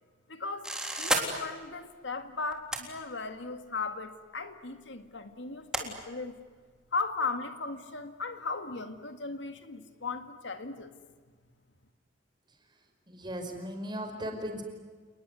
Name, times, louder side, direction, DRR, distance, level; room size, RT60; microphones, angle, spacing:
voice 1, 0.3-0.7 1.0-6.4 6.9-10.9, left 4 dB, 70° left, 8 dB, 2.1 m, -37 dB
Board Game Timer Egg Timer, 0.6-1.2 2.5-2.8 3.9-4.0 5.7-5.9, right 1 dB, 5° right, 3.6 m, -29 dB
voice 2, 13.1-14.6, equal, 25° right, 4 dB, 5.3 m, -37 dB
29.5 x 20.5 x 9.7 m, 1.5 s
head